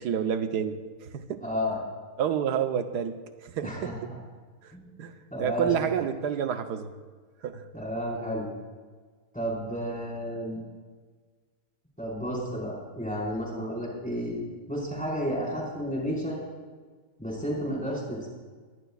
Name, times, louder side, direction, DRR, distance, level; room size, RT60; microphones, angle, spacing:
voice 1, 0.0-1.4 2.2-3.9 4.6-6.9 7.4-7.7, right 8 dB, 80° right, 8 dB, 1.5 m, -29 dB
voice 2, 1.4-1.8 3.6-3.9 4.7-4.9 5.3-5.7 7.7-8.5 9.3-10.6 12.0-14.4 14.7-16.4 17.2-18.3, equal, 5° left, -5 dB, 4.8 m, -31 dB
22.5 x 18.5 x 2.4 m, 1.5 s
omnidirectional pair, 1.8 m